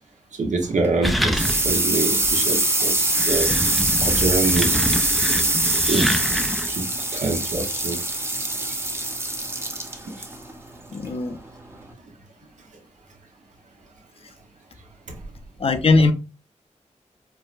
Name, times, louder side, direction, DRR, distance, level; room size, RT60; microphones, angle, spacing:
voice 1, 0.4-3.5 4.0-4.9 5.9-6.1 6.7-6.8 7.1-8.0 10.1-10.2 15.1-15.2, right 3 dB, 75° right, 0.9 m, -25 dB
sound 1, 0.6-11.9, right 1 dB, 20° right, 0.7 m, -24 dB
sound 2, 1.0-1.9 2.2-2.3 3.0-6.8, equal, ahead, 0.4 m, -26 dB
voice 2, 10.9-11.4 15.6-16.1, left 3 dB, 50° left, 0.6 m, -19 dB
4.5 x 2.1 x 2.4 m
cardioid pair, 60°, 13 cm